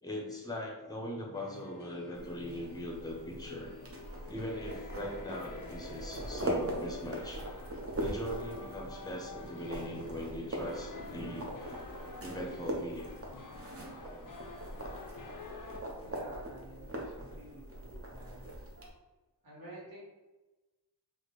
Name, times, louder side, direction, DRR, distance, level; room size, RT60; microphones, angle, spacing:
voice 1, 0.0-3.7 4.3-7.4 8.0-11.5 12.2-13.1, equal, 10° left, 0 dB, 0.7 m, -40 dB
sound 1, 1.3-15.8, left 4 dB, 50° left, 0.5 m, -49 dB
mashing rubber balls together, 2.1-18.9, right 1 dB, 35° right, 0.7 m, -41 dB
sound 2, 5.4-16.2, equal, 10° right, 1.0 m, -59 dB
voice 2, 15.9-18.5 19.4-20.0, right 1 dB, 55° right, -6 dB, 1.4 m, -50 dB
4.2 x 2.1 x 3.1 m, 1.1 s
wide cardioid pair, 80°, 42 cm